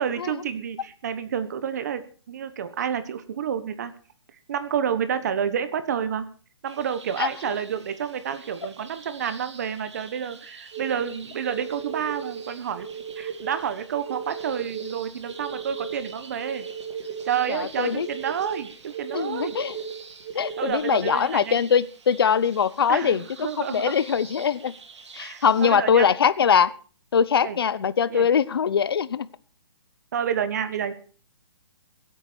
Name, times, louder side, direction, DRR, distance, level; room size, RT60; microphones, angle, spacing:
voice 1, 0.0-3.9 4.5-6.3 6.6-12.9 13.2-16.7 17.2-19.6 20.6-21.6 22.9-24.0 25.2-26.1 27.4-27.6 28.1-28.3 30.1-30.9, right 8 dB, 35° right, 1.3 m, -29 dB
sound 1, 6.6-25.7, right 4 dB, 80° right, 2.6 m, -47 dB
voice 2, 7.2-7.5 17.5-18.1 19.1-19.7 20.3-24.7 25.2-26.7 27.1-29.3, left 7 dB, 55° left, 0.8 m, -22 dB
sound 2, 10.7-20.7, right 7 dB, 20° right, 1.9 m, -36 dB
22.0 x 8.6 x 4.5 m
hypercardioid pair, 170°, 15 cm